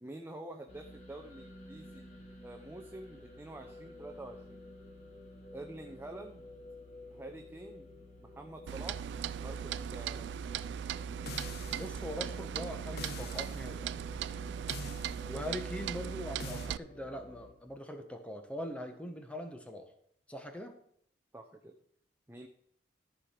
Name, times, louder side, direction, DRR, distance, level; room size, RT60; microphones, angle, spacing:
voice 1, 0.0-2.1 2.4-4.6 5.5-6.4 7.1-7.9 8.2-9.0 9.4-10.3 21.3-21.7 22.3-22.5, right 2 dB, 10° right, 3 dB, 0.7 m, -47 dB
sound 1, 0.7-17.5, left 1 dB, 40° left, 2.7 m, -52 dB
Clock, 8.7-16.8, right 8 dB, 65° right, 0.3 m, -38 dB
sound 2, 11.3-12.0 13.0-13.7 14.7-15.3 16.4-16.7, left 6 dB, 55° left, 0.4 m, -45 dB
voice 2, 11.7-13.9 15.3-19.9 20.3-20.7, equal, 5° left, 5 dB, 1.2 m, -42 dB
13.5 x 5.1 x 5.8 m, 0.67 s
head